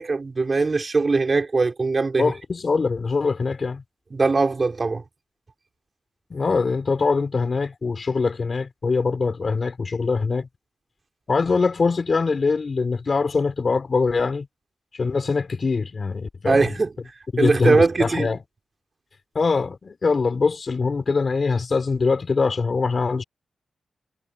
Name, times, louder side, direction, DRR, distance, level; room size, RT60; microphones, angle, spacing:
voice 1, 0.0-2.3 4.1-5.0 16.4-16.9 17.4-18.3, right 3 dB, 40° right, 4.0 m, -21 dB
voice 2, 2.2-3.8 6.3-10.5 11.3-14.5 14.9-16.7 17.3-18.4 19.4-23.2, left 4 dB, 45° left, 5.0 m, -23 dB
cardioid pair, 85°, 0 cm